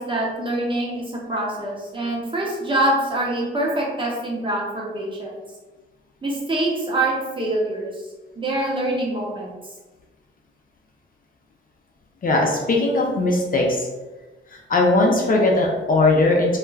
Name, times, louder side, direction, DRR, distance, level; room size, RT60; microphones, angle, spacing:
voice 1, 0.0-5.3 6.2-7.9 8.4-9.5, right 1 dB, 25° right, -4 dB, 0.8 m, -25 dB
voice 2, 12.2-13.9 14.5-16.6, left 2 dB, 40° left, -1 dB, 0.5 m, -19 dB
2.3 x 2.1 x 3.2 m, 1.2 s
cardioid pair, 75°, 21 cm